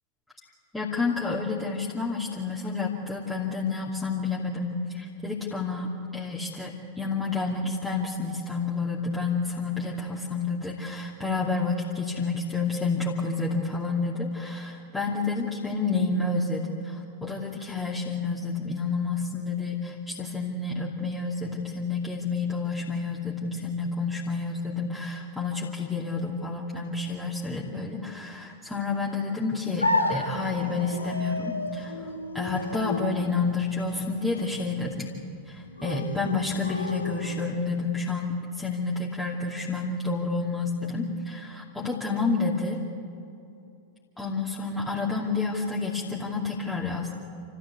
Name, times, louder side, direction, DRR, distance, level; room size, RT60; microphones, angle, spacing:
voice 1, 0.7-32.0 32.3-35.1 35.5-42.8 44.2-47.2, left 4 dB, 5° left, -5 dB, 2.7 m, -29 dB
sound 1, 29.8-37.8, left 2 dB, 85° left, 1.6 m, -33 dB
28.5 x 15.0 x 8.4 m, 2.6 s
figure-of-eight pair, 90°, 0 cm